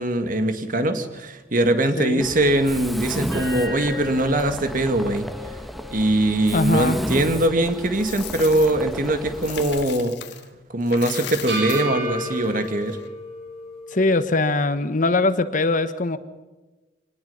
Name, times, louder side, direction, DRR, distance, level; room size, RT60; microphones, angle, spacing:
voice 1, 0.0-5.3 5.9-10.2 10.7-13.0, right 1 dB, 50° right, 7 dB, 2.2 m, -22 dB
voice 2, 2.0-2.3 6.5-7.0 13.9-16.2, left 2 dB, 50° left, 11 dB, 1.4 m, -21 dB
Mechanisms, 2.2-9.8, equal, ahead, 1.2 m, -33 dB
sound 1, 3.3-7.6 8.0-8.1 11.5-14.1, left 1 dB, 70° right, 7.9 m, -34 dB
Coin (dropping), 7.6-10.5 10.8-13.1, left 11 dB, 75° left, 1.8 m, -38 dB
25.5 x 19.5 x 5.7 m, 1.2 s
head